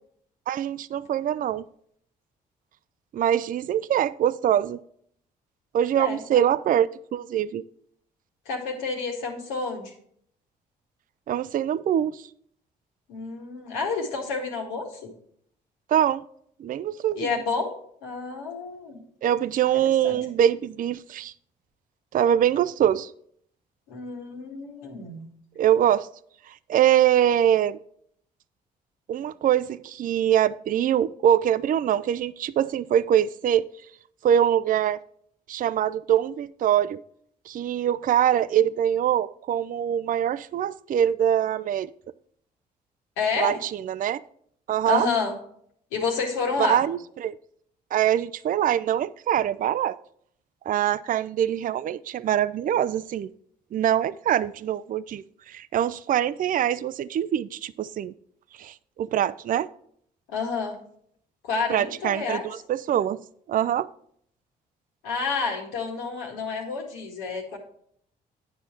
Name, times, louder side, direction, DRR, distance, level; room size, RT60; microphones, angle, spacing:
voice 1, 0.5-1.6 3.1-4.8 5.7-7.6 11.3-12.2 15.9-16.2 16.6-17.4 19.2-21.3 22.1-23.1 25.6-26.1 26.7-27.8 29.1-33.7 34.2-35.0 35.5-37.0 37.5-41.9 43.4-44.2 44.7-45.1 46.6-47.4 47.9-50.0 50.7-53.3 53.7-58.1 58.6-59.7 61.7-63.2 63.5-63.9, right 10 dB, 45° right, 16 dB, 0.4 m, -23 dB
voice 2, 8.5-9.9 13.1-15.1 17.2-17.7 18.0-19.0 20.0-20.2 23.9-25.3 43.2-43.6 44.9-45.3 45.9-46.8 60.3-60.8 61.4-62.5 65.0-67.6, left 4 dB, 80° left, 1 dB, 1.8 m, -29 dB
9.6 x 5.5 x 4.4 m, 0.66 s
hypercardioid pair, 50°, 20 cm